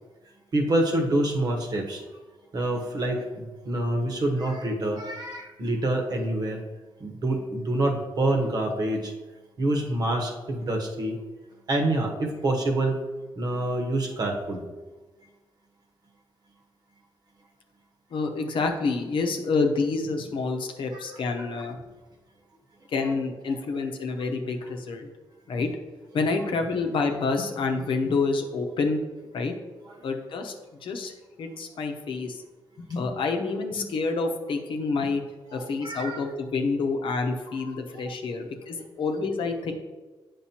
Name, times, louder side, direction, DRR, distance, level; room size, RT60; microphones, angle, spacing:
voice 1, 0.5-2.0 2.5-6.6 7.0-9.1 9.6-11.2 11.7-13.0 13.4-14.6 20.9-21.0 21.4-21.5 29.9-30.0 35.5-36.2 37.6-37.7 38.1-38.2, right 1 dB, 45° right, 2 dB, 1.2 m, -27 dB
voice 2, 18.1-21.8 22.9-25.1 25.5-25.7 26.1-29.0 29.3-29.5 30.0-30.5 30.8-31.1 31.4-32.4 32.8-35.2 35.5-39.7, left 4 dB, 65° left, 4 dB, 0.9 m, -28 dB
8.4 x 5.4 x 2.9 m, 1.3 s
cardioid pair, 105°, 9 cm